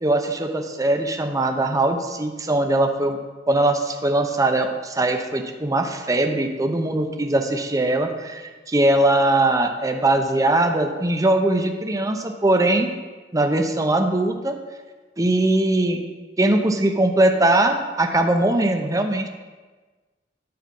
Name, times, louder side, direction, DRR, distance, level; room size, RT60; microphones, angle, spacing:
voice 1, 0.0-3.2 3.5-12.9 13.3-14.6 15.2-16.0 16.4-19.3, right 1 dB, 20° right, 5 dB, 0.8 m, -21 dB
10.5 x 6.9 x 5.4 m, 1.3 s
head